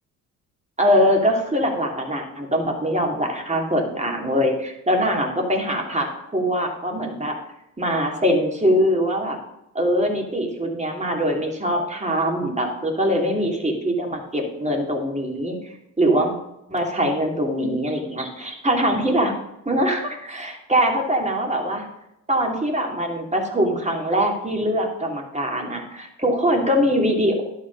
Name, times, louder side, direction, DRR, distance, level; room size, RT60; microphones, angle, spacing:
voice 1, 0.8-6.1 6.3-7.3 7.8-9.4 9.7-16.3 16.7-19.3 19.7-21.9 22.3-27.4, equal, 15° right, 1 dB, 2.8 m, -22 dB
11.5 x 5.7 x 5.3 m, 0.87 s
hypercardioid pair, 60°, 45 cm